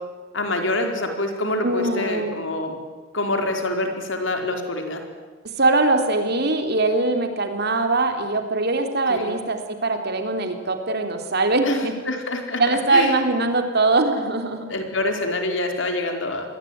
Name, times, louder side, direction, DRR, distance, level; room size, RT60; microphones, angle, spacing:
voice 1, 0.3-2.8 3.1-5.0 9.1-9.4 11.6-13.2 14.7-16.5, left 2 dB, 75° left, 4 dB, 4.6 m, -26 dB
voice 2, 1.6-2.4 5.6-11.9 12.6-14.7, right 2 dB, 55° right, 6 dB, 3.6 m, -22 dB
27.5 x 21.5 x 9.5 m, 1.3 s
head